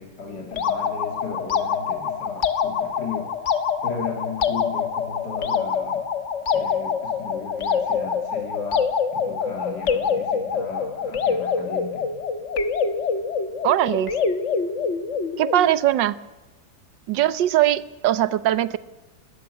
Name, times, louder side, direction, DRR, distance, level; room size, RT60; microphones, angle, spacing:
voice 1, 0.0-3.3 3.8-6.0 6.5-12.1, left 4 dB, 65° left, 1 dB, 3.2 m, -36 dB
sound 1, 0.5-15.7, left 6 dB, 45° left, 1.3 m, -25 dB
voice 2, 13.6-14.2 15.4-16.2 17.1-18.8, right 13 dB, 90° right, 16 dB, 1.5 m, -20 dB
19.5 x 13.5 x 9.8 m, 1.1 s
omnidirectional pair, 1.9 m